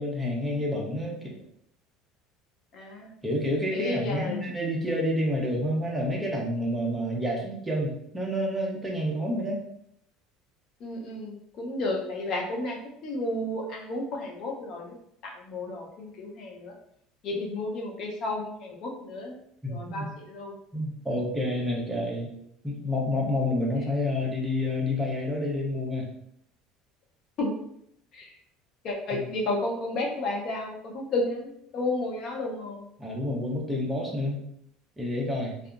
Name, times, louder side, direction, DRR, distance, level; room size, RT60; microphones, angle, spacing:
voice 1, 0.0-1.3 3.2-9.6 19.6-20.1 20.7-22.3 22.6-26.1 29.1-29.2 33.0-34.4 35.0-35.5, left 1 dB, 10° right, -1 dB, 0.5 m, -29 dB
voice 2, 2.7-3.1 3.7-4.4 10.8-15.0 15.2-16.7 17.2-19.4 19.7-20.6 27.4-27.6 28.1-28.3 28.8-32.9, left 2 dB, 45° left, 0 dB, 0.6 m, -32 dB
2.7 x 2.3 x 2.4 m, 0.74 s
cardioid pair, 155°, 0 cm